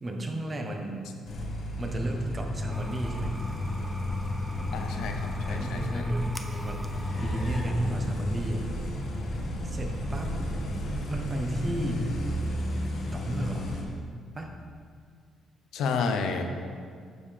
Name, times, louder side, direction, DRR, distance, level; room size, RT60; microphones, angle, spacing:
voice 1, 0.0-1.1 1.8-3.3 5.4-6.9 7.2-8.6 9.6-10.3 11.1-12.1 13.1-13.7 14.3-14.5, right 1 dB, 30° right, 2 dB, 1.0 m, -33 dB
sound 1, 1.3-13.8, left 1 dB, 65° left, 1.2 m, -32 dB
sound 2, 2.7-9.3, right 1 dB, 5° right, 0.6 m, -44 dB
voice 2, 4.7-6.1 15.7-16.5, left 4 dB, 85° left, 5 dB, 0.7 m, -31 dB
9.4 x 5.6 x 3.4 m, 2.1 s
cardioid pair, 100°, 0 cm